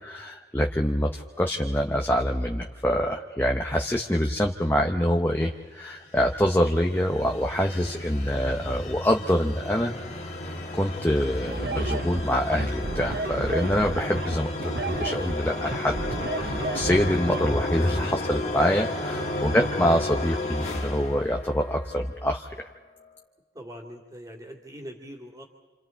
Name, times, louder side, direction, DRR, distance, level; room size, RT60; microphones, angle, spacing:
voice 1, 0.0-9.9 10.4-15.9 16.3-22.7, equal, 15° left, 2 dB, 0.8 m, -25 dB
sound 1, 5.9-22.1, left 2 dB, 40° left, 1.8 m, -33 dB
sound 2, 11.5-17.5, right 3 dB, 60° right, 0.8 m, -32 dB
voice 2, 19.1-19.5 23.5-25.4, equal, 20° right, -8 dB, 2.4 m, -42 dB
28.5 x 28.0 x 4.5 m, 1.3 s
head